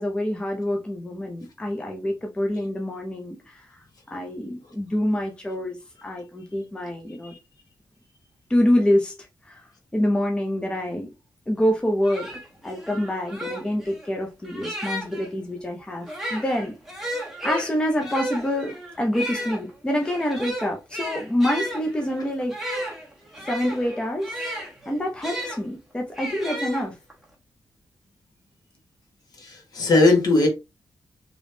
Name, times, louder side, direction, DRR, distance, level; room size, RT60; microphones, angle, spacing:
voice 1, 0.0-3.7 4.1-7.3 8.5-9.2 9.4-9.6 9.9-11.1 11.5-16.7 17.4-22.6 23.4-24.3 24.8-27.0, left 1 dB, 15° left, 0.6 m, -26 dB
sound 1, 11.7-11.8 12.0-15.3 16.0-25.6 26.1-27.2, equal, 5° right, 1.2 m, -34 dB
voice 2, 29.4-30.5, left 2 dB, 65° left, 1.4 m, -18 dB
3.5 x 3.0 x 2.7 m
wide cardioid pair, 150°, 7 cm